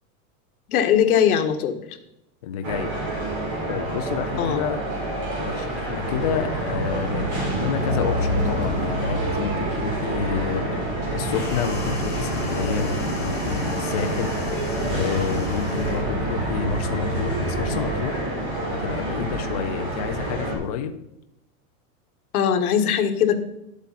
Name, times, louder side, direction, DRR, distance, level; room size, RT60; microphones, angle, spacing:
voice 1, 0.7-1.8 4.4-4.6 22.3-23.4, left 8 dB, 80° left, 6 dB, 1.5 m, -20 dB
voice 2, 2.4-2.9 3.7-4.8 5.4-10.7 11.1-18.2 18.7-21.0, left 7 dB, 30° left, 6 dB, 0.4 m, -29 dB
sound 1, 2.6-20.6, right 1 dB, 35° right, 3.8 m, -28 dB
sound 2, 6.0-18.0, left 1 dB, 20° right, 1.8 m, -30 dB
sound 3, 11.3-16.1, left 4 dB, 5° left, 2.0 m, -40 dB
12.0 x 8.2 x 4.1 m, 0.86 s
supercardioid pair, 180°, 43 cm